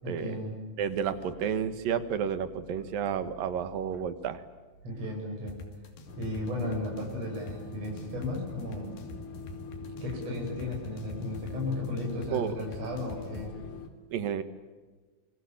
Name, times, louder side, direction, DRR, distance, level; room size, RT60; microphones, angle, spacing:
voice 1, 0.0-0.5 4.8-5.6 6.2-9.0 10.0-13.6, left 1 dB, 40° right, -1 dB, 7.3 m, -35 dB
voice 2, 0.8-4.4 12.3-12.5 14.1-14.4, right 8 dB, 70° right, 12 dB, 3.1 m, -31 dB
sound 1, 5.5-13.4, left 3 dB, 90° left, 4.7 m, -45 dB
sound 2, 6.1-13.9, left 4 dB, 55° left, 3.7 m, -43 dB
27.0 x 24.0 x 8.7 m, 1.4 s
omnidirectional pair, 4.3 m